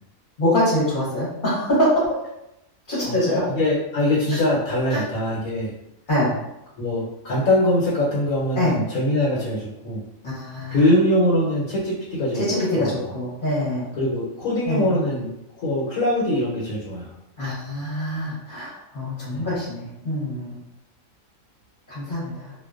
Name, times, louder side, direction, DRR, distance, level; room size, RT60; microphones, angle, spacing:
voice 1, 0.4-2.2 2.9-3.4 4.3-4.4 4.9-5.0 6.1-6.3 8.6-8.8 10.2-10.8 12.3-13.9 14.6-14.9 17.4-20.6 21.9-22.5, left 1 dB, 40° left, -10 dB, 0.9 m, -24 dB
voice 2, 3.5-5.7 6.8-10.0 10.7-12.4 12.7-13.1 14.0-15.3 15.6-17.1 19.3-19.4, left 1 dB, 90° left, -7 dB, 1.1 m, -22 dB
2.4 x 2.1 x 2.4 m, 0.87 s
omnidirectional pair, 1.4 m